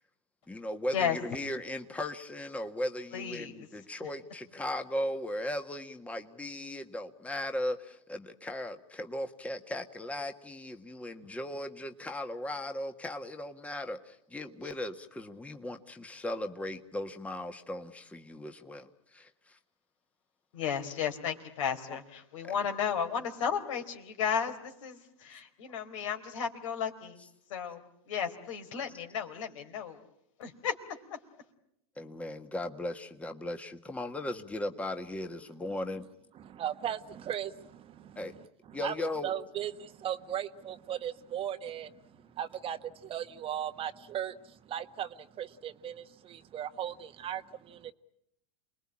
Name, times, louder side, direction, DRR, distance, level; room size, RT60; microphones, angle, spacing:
voice 1, 0.5-19.6 21.9-22.0 32.0-36.1 38.1-38.4 38.7-39.3, left 1 dB, 10° left, 1.5 m, -37 dB
voice 2, 3.1-3.7 20.5-27.2 27.5-30.0 30.4-30.7, left 7 dB, 70° left, 4.0 m, -34 dB
voice 3, 36.4-38.4 38.7-47.9, right 10 dB, 35° right, 1.2 m, -38 dB
28.5 x 21.0 x 8.8 m
hypercardioid pair, 115°, 17 cm